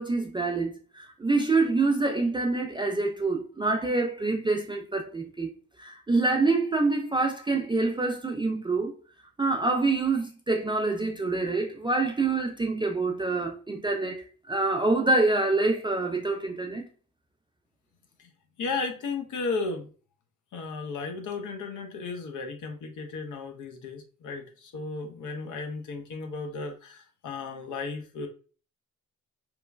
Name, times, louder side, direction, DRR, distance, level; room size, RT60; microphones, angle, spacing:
voice 1, 0.0-5.5 5.8-8.9 9.4-14.2 14.5-16.9, right 3 dB, 15° right, 0.4 m, -26 dB
voice 2, 18.6-19.9 20.5-28.3, left 4 dB, 50° left, 0.7 m, -34 dB
3.0 x 2.2 x 2.2 m
hypercardioid pair, 45°, 39 cm